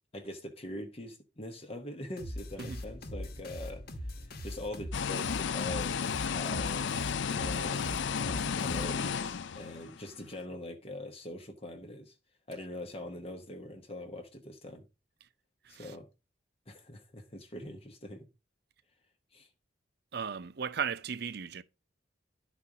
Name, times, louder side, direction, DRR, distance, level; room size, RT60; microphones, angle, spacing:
voice 1, 0.1-7.0 7.2-12.1 12.5-14.9 15.7-16.1 16.7-18.3 19.3-19.5, left 1 dB, 30° left, 1.0 m, -43 dB
sound 1, 2.2-9.3, left 1 dB, 50° left, 1.2 m, -42 dB
sound 2, 4.9-10.1, left 6 dB, 70° left, 0.5 m, -33 dB
voice 2, 20.1-21.6, right 6 dB, 55° right, 0.5 m, -36 dB
11.0 x 4.1 x 4.9 m
head